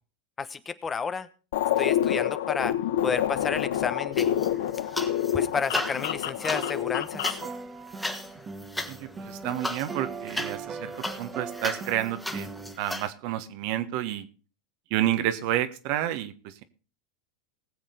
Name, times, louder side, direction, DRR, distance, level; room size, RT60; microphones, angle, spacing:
voice 1, 0.4-1.3 1.8-2.7 3.0-4.3 5.3-7.4, left 5 dB, 25° left, 13 dB, 1.0 m, -31 dB
sound 1, 1.5-7.5, left 11 dB, 75° left, 0.9 m, -27 dB
sound 2, 4.1-5.3 5.6-13.1, left 1 dB, 5° left, 1.7 m, -36 dB
sound 3, 6.4-12.7, right 4 dB, 25° right, 1.6 m, -39 dB
voice 2, 8.9-10.9 11.2-12.5 12.8-14.3 14.9-16.6, right 12 dB, 60° right, 10 dB, 1.4 m, -30 dB
20.0 x 7.5 x 4.0 m, 0.35 s
hypercardioid pair, 105°, 0 cm